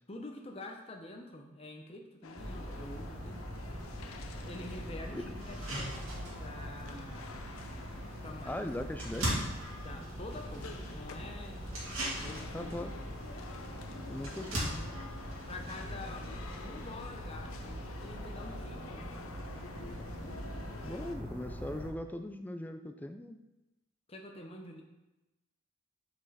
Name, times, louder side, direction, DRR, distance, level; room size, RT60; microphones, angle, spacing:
voice 1, 0.1-3.4 4.5-7.3 8.2-8.7 9.8-11.6 12.0-12.9 15.5-19.1 24.1-24.8, left 2 dB, 30° left, 3 dB, 0.7 m, -47 dB
sound 1, 2.2-21.2, left 3 dB, 85° left, 0.6 m, -49 dB
sound 2, 2.4-21.9, equal, 25° right, 1.9 m, -43 dB
sound 3, 4.4-4.5 4.9-5.0 5.4-17.1, right 1 dB, 75° right, 2.4 m, -42 dB
voice 2, 8.4-9.5 12.5-12.9 14.1-14.9 20.8-23.4, left 1 dB, 10° left, 7 dB, 0.3 m, -40 dB
6.3 x 5.2 x 4.1 m, 1.0 s
head